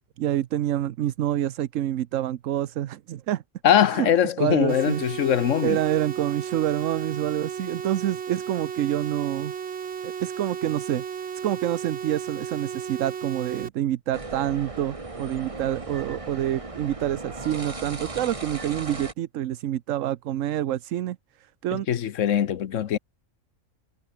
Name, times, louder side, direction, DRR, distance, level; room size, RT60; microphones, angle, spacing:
voice 1, 0.2-3.4 3.9-4.1 4.4-5.0 5.6-9.5 10.0-11.0 11.4-21.2 21.6-21.9, right 12 dB, 80° right, 1.1 m, -27 dB
voice 2, 3.6-5.8 21.7-23.0, left 9 dB, 75° left, 1.2 m, -22 dB
sound 1, 4.7-13.7, right 7 dB, 60° right, 1.3 m, -34 dB
sound 2, 14.1-19.1, right 2 dB, 25° right, 1.8 m, -37 dB
omnidirectional pair, 1.3 m